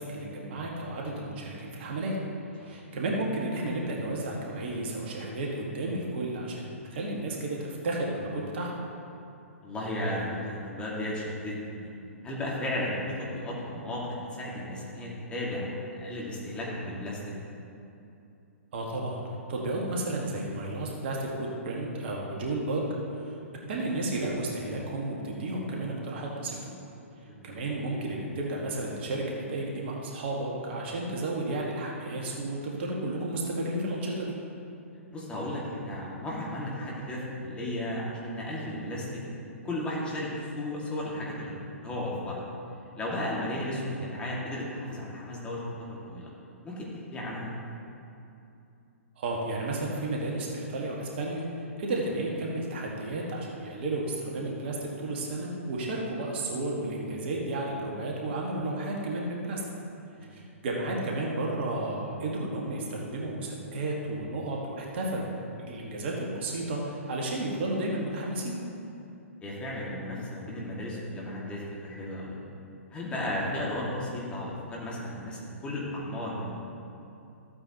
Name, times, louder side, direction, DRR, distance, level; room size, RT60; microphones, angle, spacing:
voice 1, 0.0-2.1 2.6-8.7 18.7-19.2 19.5-22.9 23.1-23.4 23.7-26.6 27.4-34.4 49.2-59.6 60.3-65.3 65.6-68.6, right 2 dB, 50° right, -2 dB, 1.8 m, -32 dB
voice 2, 9.6-11.9 12.2-15.6 16.0-17.2 27.2-27.4 35.1-39.2 39.6-41.5 41.8-42.5 43.0-46.3 46.6-46.9 47.1-47.5 60.2-60.3 69.4-72.4 72.9-76.5, left 1 dB, 15° left, -5 dB, 2.2 m, -34 dB
14.5 x 8.7 x 3.0 m, 2.8 s
figure-of-eight pair, 120°, 8 cm